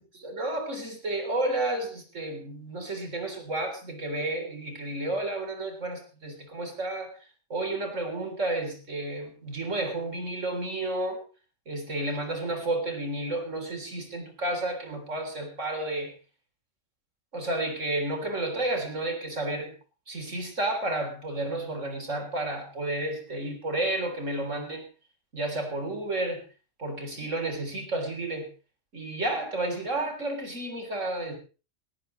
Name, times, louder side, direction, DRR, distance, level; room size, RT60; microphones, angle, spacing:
voice 1, 0.1-7.1 7.5-11.2 11.7-16.1 17.3-19.7 20.1-24.8 25.3-26.4 26.8-28.5 28.9-31.3, right 2 dB, 85° right, 5 dB, 3.9 m, -31 dB
18.5 x 16.5 x 3.1 m, 0.34 s
omnidirectional pair, 1.3 m